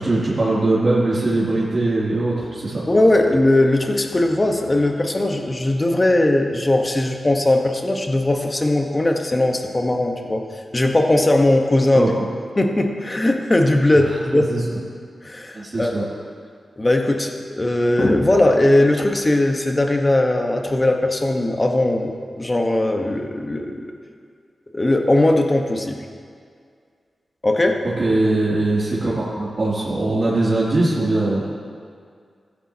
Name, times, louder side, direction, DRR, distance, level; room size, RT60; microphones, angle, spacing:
voice 1, 0.0-2.8 11.9-12.1 14.3-14.6 15.5-16.0 28.0-31.5, right 2 dB, 45° right, -9 dB, 2.7 m, -21 dB
voice 2, 2.9-10.4 10.7-12.1 12.6-14.5 15.2-16.1 16.8-23.9 24.7-26.0 27.4-27.8, left 1 dB, 30° left, 4 dB, 1.1 m, -19 dB
15.0 x 11.0 x 2.9 m, 2.1 s
cardioid pair, 60°, 0 cm